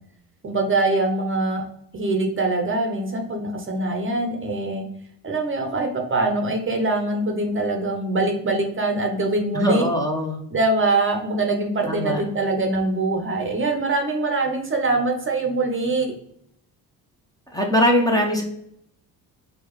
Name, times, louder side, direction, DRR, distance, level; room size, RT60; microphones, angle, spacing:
voice 1, 0.4-1.6 1.9-4.8 5.2-9.9 10.5-16.1, right 2 dB, 30° right, 3 dB, 0.8 m, -23 dB
voice 2, 9.5-10.4 11.9-12.2 17.5-18.4, left 1 dB, 10° left, 0 dB, 0.8 m, -21 dB
4.6 x 2.4 x 3.1 m, 0.74 s
cardioid pair, 80°, 40 cm